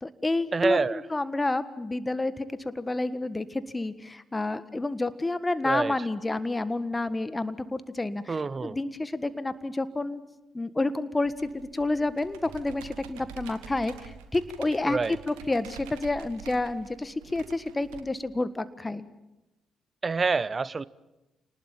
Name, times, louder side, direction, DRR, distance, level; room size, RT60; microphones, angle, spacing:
voice 1, 0.0-8.3 8.6-10.2 10.5-15.0 15.3-19.1, left 2 dB, 20° left, 1.6 m, -29 dB
voice 2, 0.5-1.0 5.6-5.9 8.3-8.8 14.9-15.2 20.0-20.8, right 4 dB, 35° right, 0.8 m, -26 dB
Computer keyboard, 11.2-18.0, right 9 dB, 75° right, 1.5 m, -47 dB
28.0 x 19.5 x 7.3 m
hypercardioid pair, 45°, 0 cm